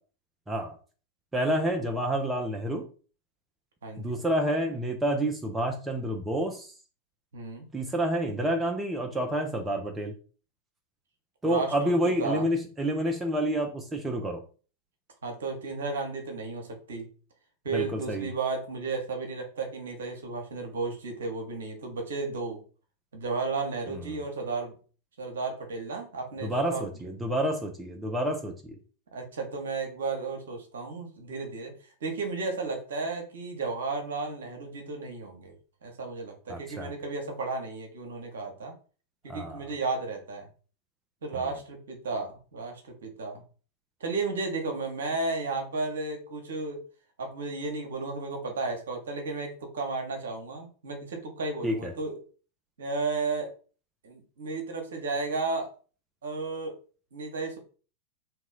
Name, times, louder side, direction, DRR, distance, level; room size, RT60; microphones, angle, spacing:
voice 1, 1.3-2.9 4.0-6.7 7.7-10.1 11.4-14.4 17.7-18.3 23.9-24.2 26.4-28.8 36.5-36.9 39.3-39.6 41.3-41.4 51.6-51.9, right 1 dB, 10° right, 3 dB, 0.6 m, -29 dB
voice 2, 3.8-4.2 7.3-7.6 11.4-12.5 15.2-17.1 17.6-22.6 23.1-24.8 25.2-26.9 29.1-31.7 32.0-35.5 35.8-38.7 39.2-40.5 41.2-43.4 44.0-46.8 47.2-52.2 52.8-53.5 54.0-55.7 56.2-56.8 57.1-57.6, right 3 dB, 65° right, 4 dB, 1.0 m, -33 dB
2.9 x 2.8 x 3.8 m, 0.38 s
figure-of-eight pair, 90°, 0 cm